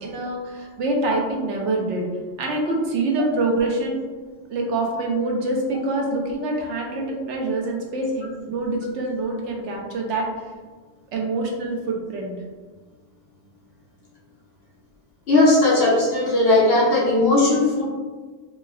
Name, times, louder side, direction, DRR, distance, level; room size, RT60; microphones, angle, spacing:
voice 1, 0.0-2.1 2.4-4.0 4.5-10.3 11.1-12.3, right 2 dB, 75° right, 0 dB, 1.0 m, -25 dB
voice 2, 15.3-17.9, left 2 dB, 60° left, -5 dB, 0.8 m, -17 dB
4.1 x 2.2 x 2.3 m, 1.4 s
omnidirectional pair, 1.2 m